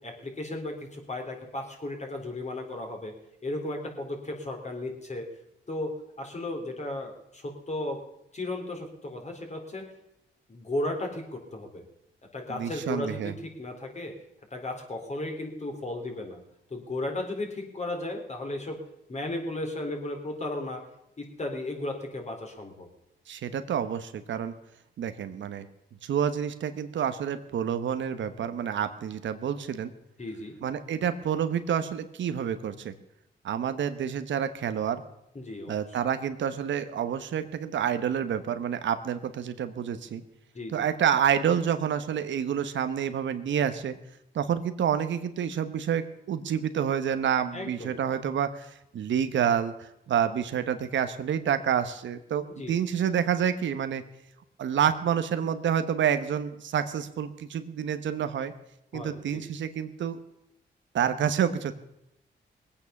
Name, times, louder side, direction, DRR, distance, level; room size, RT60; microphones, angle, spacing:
voice 1, 0.0-3.1 3.4-5.3 5.7-8.0 8.3-9.9 10.5-11.8 12.3-14.1 14.5-16.4 16.7-18.8 19.1-20.8 21.2-22.9 30.2-30.5 35.3-35.8 40.5-40.8 47.5-48.0 52.5-52.8 58.9-59.4, left 2 dB, 35° left, 2 dB, 4.0 m, -35 dB
voice 2, 12.5-13.3 23.3-24.5 25.0-25.7 26.0-29.9 30.6-32.9 33.4-35.0 35.7-40.2 40.7-43.9 44.3-54.0 54.6-58.5 58.9-60.2 60.9-61.7, right 8 dB, 80° right, 10 dB, 1.1 m, -28 dB
20.0 x 8.8 x 7.1 m, 0.83 s
cardioid pair, 75°, 19 cm